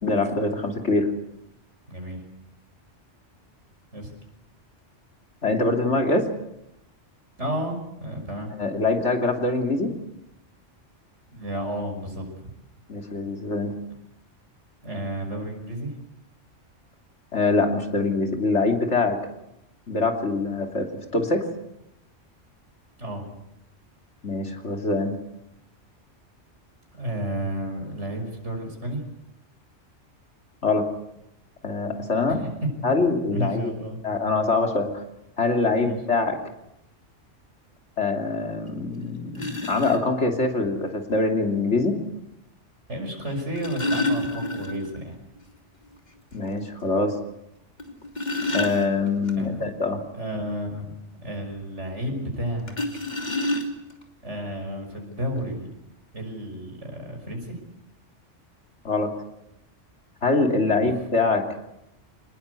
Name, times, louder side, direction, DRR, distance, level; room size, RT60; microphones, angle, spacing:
voice 1, 0.0-1.1 5.4-6.3 8.6-9.9 12.9-13.7 17.3-19.2 19.9-21.5 24.2-25.2 30.6-30.9 31.6-32.4 32.8-33.7 34.0-35.0 35.4-36.4 38.0-42.0 46.3-47.2 48.5-50.0 58.8-59.1 60.2-61.5, left 3 dB, 65° left, 4 dB, 3.2 m, -24 dB
voice 2, 1.9-2.2 3.9-4.1 7.4-8.5 11.3-12.5 14.8-15.9 23.0-23.2 26.9-29.0 32.3-32.9 33.3-34.0 35.8-36.0 42.9-45.2 49.3-49.7 50.1-52.8 54.2-55.7 56.1-57.6 60.8-60.9, equal, 65° right, 3 dB, 6.3 m, -32 dB
sound 1, 38.7-38.8 39.3-40.0 41.4-41.5 43.3-45.0 45.4-45.5 45.9-46.0 46.5-46.6 47.8-49.3 52.7-54.0 54.9-55.0 55.4-55.6, left 1 dB, 35° left, 3.1 m, -28 dB
26.0 x 20.5 x 8.3 m, 0.83 s
omnidirectional pair, 1.3 m